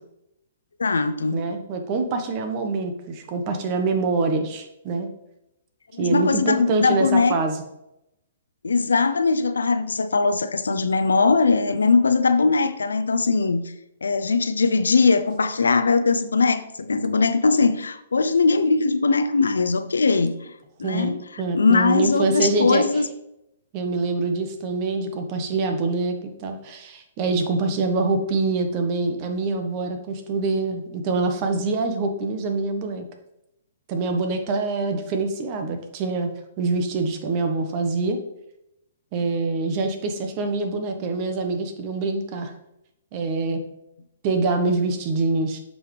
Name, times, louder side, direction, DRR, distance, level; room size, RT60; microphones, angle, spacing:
voice 1, 0.8-1.4 5.9-7.3 8.6-13.6 14.0-20.4 20.8-23.1, left 4 dB, 90° left, 11 dB, 0.6 m, -20 dB
voice 2, 1.3-5.1 6.0-7.6 20.8-22.8 23.7-33.0 33.9-36.3 36.6-38.2 39.1-42.5 43.1-43.6 44.2-45.6, right 3 dB, 40° right, 6 dB, 1.2 m, -25 dB
8.5 x 5.5 x 3.3 m, 0.84 s
hypercardioid pair, 135°, 0 cm